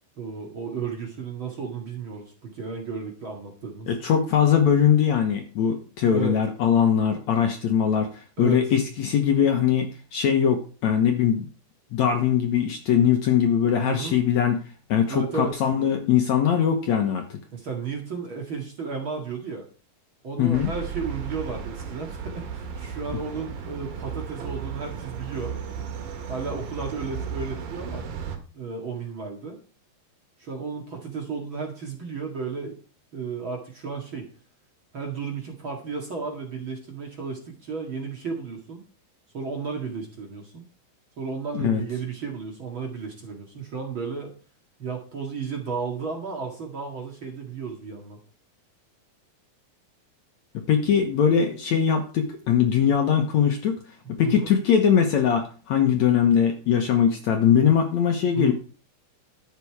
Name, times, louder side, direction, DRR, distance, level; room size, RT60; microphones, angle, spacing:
voice 1, 0.2-3.9 6.1-6.4 8.4-8.6 13.8-14.2 15.1-15.6 17.5-19.6 20.2-25.5 26.3-28.1 28.5-29.6 30.4-32.8 33.1-34.3 34.9-38.8 39.3-40.6 41.2-44.3 44.8-48.2 54.2-54.5 58.3-58.5, right 5 dB, 40° right, 1 dB, 2.2 m, -33 dB
voice 2, 3.9-11.5 11.9-14.6 14.9-17.4 20.4-20.7 41.5-41.8 50.7-53.8 54.2-58.5, left 8 dB, 65° left, 4 dB, 2.1 m, -21 dB
sound 1, 20.5-28.4, right 7 dB, 75° right, 3.3 m, -35 dB
12.0 x 8.4 x 4.7 m, 0.39 s
omnidirectional pair, 4.2 m